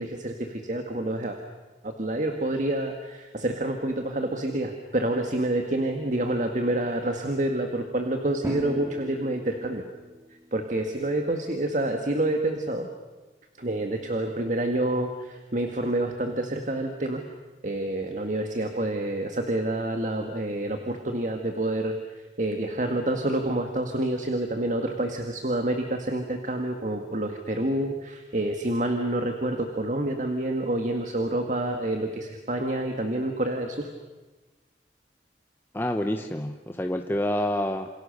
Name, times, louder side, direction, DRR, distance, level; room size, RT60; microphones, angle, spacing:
voice 1, 0.0-1.4 1.8-9.8 10.5-12.9 13.6-17.2 17.6-22.0 22.4-33.9, right 1 dB, 45° right, 5 dB, 1.9 m, -28 dB
Drum, 8.4-10.9, equal, 15° right, 3.1 m, -38 dB
voice 2, 35.7-37.9, left 1 dB, 10° left, 5 dB, 0.9 m, -28 dB
28.0 x 28.0 x 6.8 m, 1.2 s
head